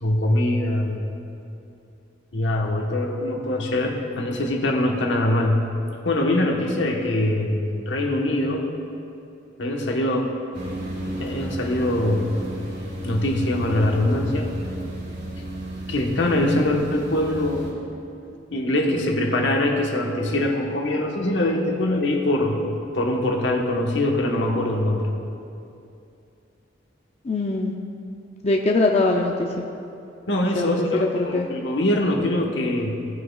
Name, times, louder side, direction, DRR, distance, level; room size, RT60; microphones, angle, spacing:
voice 1, 0.0-1.1 2.3-5.7 6.0-8.7 9.6-10.3 11.2-12.3 13.0-14.5 15.9-17.7 18.5-22.6 22.9-25.1 30.3-33.1, left 1 dB, 75° left, 1 dB, 1.2 m, -23 dB
sound 1, 10.5-17.7, equal, 65° right, 2.2 m, -32 dB
voice 2, 27.2-27.7 28.4-29.6 30.5-31.5, left 2 dB, 35° left, 1 dB, 0.5 m, -22 dB
17.0 x 8.4 x 2.3 m, 2.7 s
head